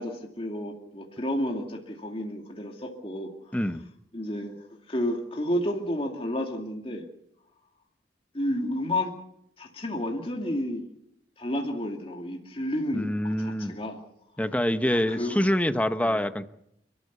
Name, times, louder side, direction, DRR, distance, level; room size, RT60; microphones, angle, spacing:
voice 1, 0.0-3.3 4.1-4.5 4.9-7.1 8.3-9.1 9.6-10.8 11.4-14.0 14.9-15.4 15.9-16.2, left 1 dB, 30° left, 1 dB, 2.5 m, -31 dB
voice 2, 3.5-3.8 12.9-13.8 14.4-16.5, equal, 10° left, 10 dB, 0.9 m, -26 dB
29.5 x 13.5 x 8.3 m, 0.79 s
head